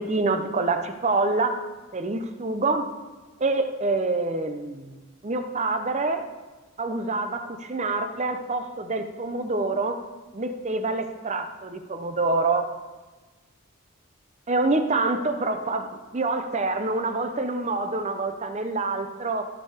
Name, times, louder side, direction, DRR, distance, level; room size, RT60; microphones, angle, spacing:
voice 1, 0.0-1.6 1.9-2.9 3.4-5.0 5.2-6.2 6.8-10.0 10.3-12.7 14.5-19.5, right 3 dB, 30° right, 7 dB, 0.6 m, -26 dB
13.5 x 4.6 x 5.0 m, 1.2 s
head